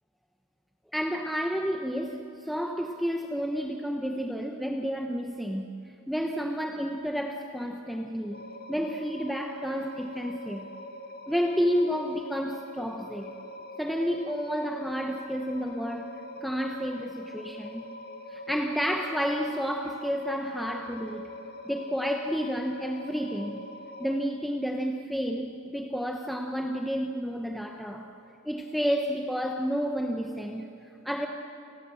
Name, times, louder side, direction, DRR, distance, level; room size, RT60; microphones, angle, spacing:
voice 1, 0.9-10.7 11.3-13.3 13.8-16.1 16.4-17.9 18.3-21.3 21.6-23.6 24.0-28.1 28.4-31.3, equal, ahead, 3 dB, 1.1 m, -31 dB
sound 1, 8.3-24.2, left 1 dB, 45° left, 1.7 m, -43 dB
29.0 x 20.5 x 7.7 m, 2.8 s
head